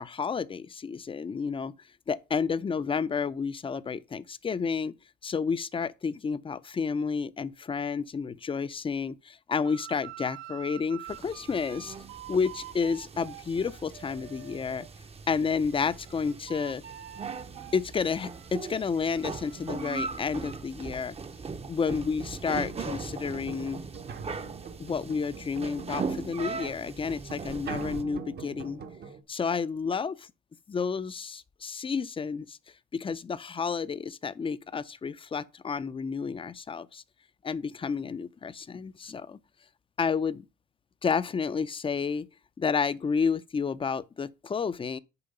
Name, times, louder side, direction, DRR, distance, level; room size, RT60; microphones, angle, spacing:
voice 1, 0.0-1.7 2.1-5.0 5.2-11.9 12.3-14.9 15.3-16.8 17.7-21.2 21.7-23.8 24.8-28.8 29.3-30.3 30.7-32.6 32.9-37.0 37.4-39.4 40.0-40.5 41.0-42.3 42.6-45.0, left 5 dB, 25° left, 0.5 m, -30 dB
sound 1, 9.6-14.9 15.3-20.6, right 13 dB, 85° right, 0.6 m, -47 dB
sound 2, 11.1-28.0, right 4 dB, 30° right, 0.7 m, -40 dB
sound 3, 17.4-19.1 21.8-21.9 22.7-29.2, right 6 dB, 55° right, 1.0 m, -43 dB
7.0 x 4.6 x 5.3 m
cardioid pair, 90°, 20 cm